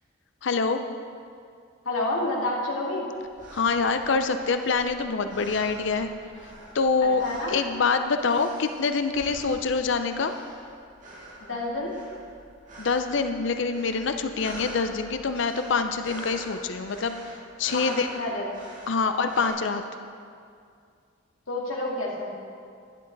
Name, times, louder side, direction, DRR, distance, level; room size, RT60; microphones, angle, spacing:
voice 1, 0.4-0.8 3.5-6.1 6.7-7.2 7.5-10.3 12.8-17.1 17.6-18.1 18.9-19.8, left 4 dB, 65° left, 8 dB, 0.5 m, -25 dB
voice 2, 1.8-3.1 7.0-7.6 11.4-12.0 17.7-18.5 21.5-22.3, left 2 dB, 90° left, -3 dB, 2.2 m, -29 dB
sound 1, 3.2-19.5, right 1 dB, 40° right, 1.8 m, -45 dB
12.0 x 11.0 x 3.9 m, 2.3 s
head